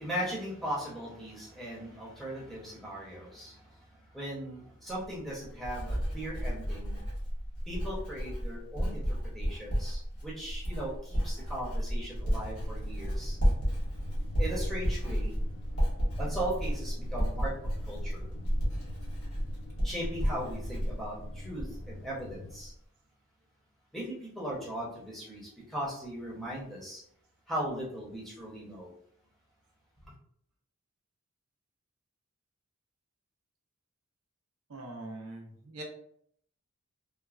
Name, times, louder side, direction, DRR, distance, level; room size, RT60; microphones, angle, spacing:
voice 1, 0.0-3.9 4.1-7.0 7.7-13.4 14.4-15.3 16.2-18.3 19.8-22.7 23.9-27.0 27.5-28.9, right 1 dB, ahead, -6 dB, 0.7 m, -38 dB
Writing, 4.9-22.0 22.2-22.7, equal, 85° left, 1.2 m, -32 dB
sound 1, 12.2-22.6, left 2 dB, 60° left, 0.5 m, -48 dB
voice 2, 34.7-35.8, right 2 dB, 90° right, 1 dB, 0.6 m, -42 dB
3.1 x 2.1 x 2.4 m, 0.67 s
head